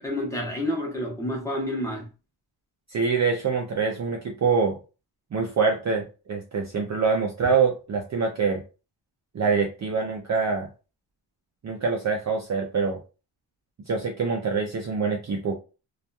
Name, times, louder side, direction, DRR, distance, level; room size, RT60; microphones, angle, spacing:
voice 1, 0.0-2.1 7.4-7.5, left 1 dB, 5° left, 0.9 m, -29 dB
voice 2, 2.9-4.8 5.3-8.6 9.3-10.7 11.6-13.0 13.9-15.5, right 5 dB, 40° right, 0.4 m, -25 dB
2.8 x 2.3 x 2.3 m
wide cardioid pair, 130°, 45 cm